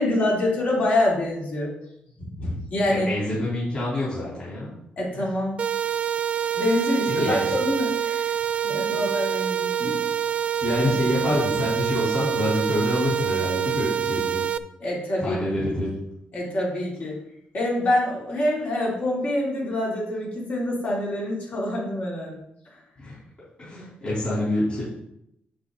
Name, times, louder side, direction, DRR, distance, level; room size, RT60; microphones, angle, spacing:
voice 1, 0.0-1.7 2.2-3.1 5.0-5.6 6.6-8.3 8.7-9.8 14.8-15.4 16.3-17.1 17.5-22.4, left 1 dB, 50° left, -4 dB, 3.6 m, -25 dB
voice 2, 2.9-4.7 7.1-7.6 8.6-8.8 9.3-9.5 9.8-10.0 10.6-14.4 15.2-15.9 23.0-23.2 23.6-24.8, left 1 dB, 30° left, -9 dB, 3.9 m, -26 dB
sound 1, 5.6-14.6, right 9 dB, 40° right, 0.4 m, -26 dB
8.0 x 7.9 x 4.1 m, 0.77 s
wide cardioid pair, 155°, 3 cm